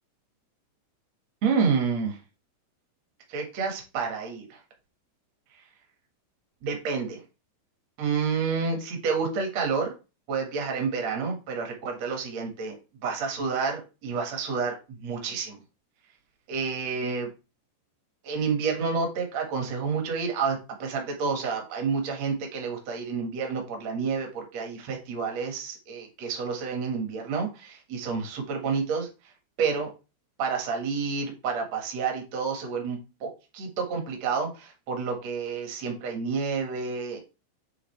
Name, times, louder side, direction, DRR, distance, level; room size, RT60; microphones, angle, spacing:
voice 1, 1.4-2.2 3.3-4.6 6.6-7.2 8.0-9.9 10.3-12.7 13.0-15.6 16.5-17.3 18.2-29.1 29.6-29.9 30.4-37.2, right 5 dB, 60° right, 2 dB, 1.7 m, -29 dB
9.7 x 3.8 x 3.3 m, 0.30 s
omnidirectional pair, 5.6 m